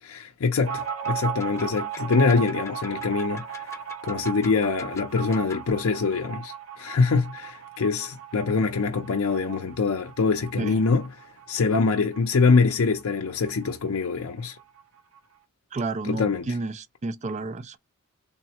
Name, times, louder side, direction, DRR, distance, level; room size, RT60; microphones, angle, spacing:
voice 1, 0.0-3.8 4.0-11.1 11.5-14.6 16.1-16.5, left 4 dB, 65° left, 0.5 m, -24 dB
sound 1, 0.6-13.8 14.0-14.1 14.4-15.2, right 10 dB, 65° right, 0.9 m, -37 dB
sound 2, 0.7-5.7, left 1 dB, 15° left, 0.9 m, -41 dB
voice 2, 15.7-17.8, right 3 dB, 30° right, 0.4 m, -31 dB
3.5 x 2.0 x 4.2 m
head